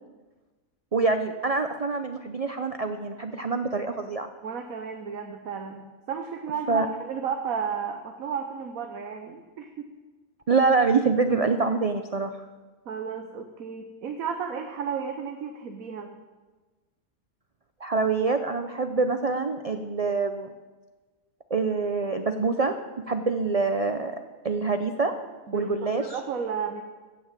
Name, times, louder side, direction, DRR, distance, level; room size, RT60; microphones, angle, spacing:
voice 1, 0.9-4.3 6.7-6.9 10.5-12.4 17.8-20.5 21.5-24.1 24.4-25.1 25.5-26.2, right 4 dB, 50° right, 7 dB, 0.4 m, -25 dB
voice 2, 4.4-9.7 12.9-16.1 25.5-25.7 26.0-26.8, right 6 dB, 70° right, 5 dB, 1.3 m, -33 dB
16.0 x 6.3 x 7.4 m, 1.3 s
omnidirectional pair, 1.5 m